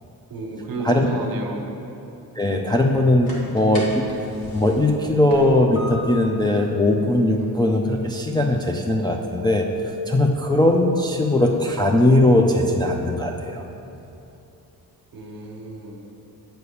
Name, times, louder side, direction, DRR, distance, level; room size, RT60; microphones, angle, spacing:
voice 1, 0.3-1.7 15.1-16.1, right 2 dB, 60° right, 2 dB, 1.2 m, -32 dB
voice 2, 2.4-4.1 4.5-13.6, left 1 dB, 10° left, 0 dB, 0.3 m, -19 dB
sound 1, 3.0-14.3, left 1 dB, 65° left, 1.8 m, -43 dB
8.3 x 4.6 x 6.8 m, 2.8 s
wide cardioid pair, 165°, 38 cm